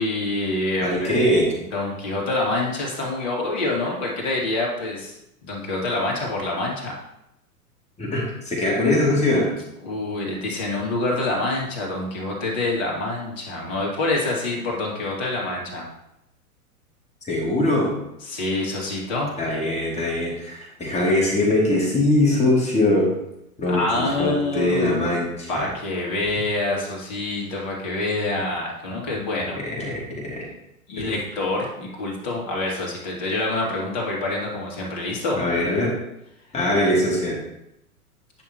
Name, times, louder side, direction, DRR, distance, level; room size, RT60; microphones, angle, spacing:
voice 1, 0.0-1.1 1.7-5.1 5.4-6.9 9.8-15.9 18.2-19.3 23.7-25.2 25.5-29.6 30.9-35.4, left 2 dB, 45° left, -2 dB, 2.8 m, -26 dB
voice 2, 0.8-1.5 8.0-9.5 17.3-17.9 19.4-23.1 23.6-25.7 29.6-30.4 31.0-31.1 35.4-35.9 36.5-37.4, left 1 dB, 15° left, -4 dB, 2.7 m, -22 dB
10.5 x 5.9 x 3.1 m, 0.84 s
figure-of-eight pair, 105°, 45 cm